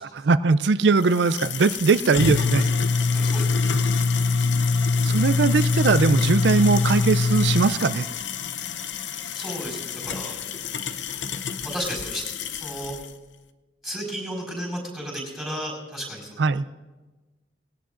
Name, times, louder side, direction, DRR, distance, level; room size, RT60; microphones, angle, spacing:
voice 1, 0.1-2.7 5.0-8.1 16.4-16.7, right 4 dB, 70° right, 14 dB, 0.4 m, -20 dB
sound 1, 1.0-13.1, left 4 dB, 85° left, 0.7 m, -24 dB
voice 2, 3.1-3.5 9.3-10.4 11.6-12.2 12.5-12.9 13.8-16.5, equal, ahead, -2 dB, 4.7 m, -33 dB
20.0 x 17.0 x 2.5 m, 1.2 s
head